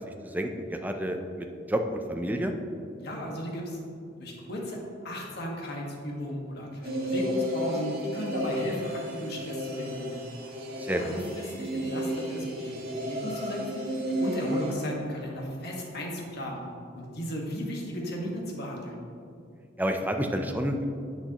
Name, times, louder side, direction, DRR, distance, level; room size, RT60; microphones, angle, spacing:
voice 1, 0.2-2.5 10.8-11.0 19.8-20.8, equal, 10° right, 4 dB, 0.5 m, -29 dB
voice 2, 3.0-3.8 4.2-4.8 5.0-10.2 10.8-13.8 14.2-16.6 16.9-19.0, equal, 60° left, -1 dB, 1.7 m, -35 dB
sound 1, 6.8-14.7, equal, 55° right, 1.9 m, -32 dB
10.5 x 7.8 x 3.0 m, 2.5 s
head